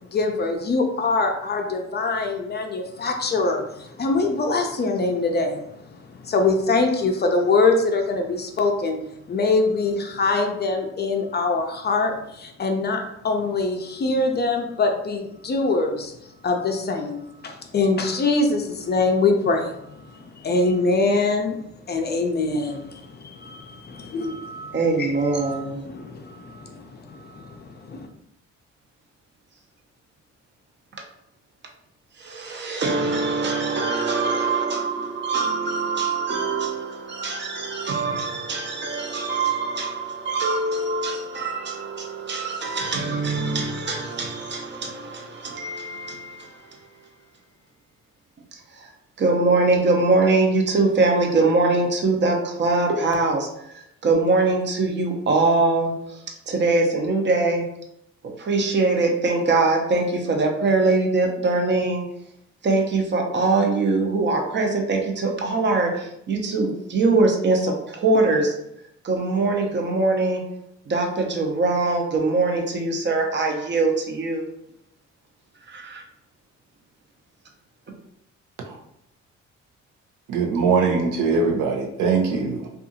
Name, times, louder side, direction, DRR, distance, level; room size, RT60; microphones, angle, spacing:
voice 1, 0.0-9.0 9.3-16.1 16.4-28.1, left 3 dB, 35° left, 4 dB, 0.4 m, -24 dB
voice 2, 24.7-25.8 32.2-46.7 48.7-48.9 49.2-57.6 58.2-62.0 62.6-68.5 69.0-70.4 70.9-74.5 75.7-76.0, right 3 dB, 35° right, 2 dB, 0.6 m, -23 dB
voice 3, 80.3-82.7, right 4 dB, 90° right, 2 dB, 0.6 m, -22 dB
2.6 x 2.4 x 2.6 m, 0.78 s
cardioid pair, 90°, 30 cm